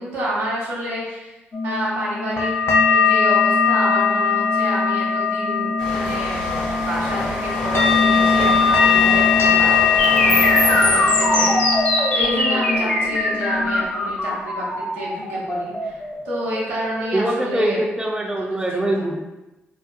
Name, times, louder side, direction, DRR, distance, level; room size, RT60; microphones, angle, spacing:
voice 1, 0.0-1.3 1.6-2.5 2.8-6.4 6.8-17.8 18.4-19.1, right 1 dB, 85° right, -7 dB, 0.7 m, -29 dB
sound 1, 1.5-13.8, left 5 dB, 55° left, 0.5 m, -20 dB
sound 2, 5.8-13.2 13.5-13.9, equal, 85° left, 0.8 m, -29 dB
sound 3, 10.0-17.9, left 1 dB, 30° left, 0.9 m, -21 dB
voice 2, 17.1-19.2, right 1 dB, 15° right, 0 dB, 0.5 m, -23 dB
2.6 x 2.0 x 2.5 m, 1.0 s
hypercardioid pair, 45°, 5 cm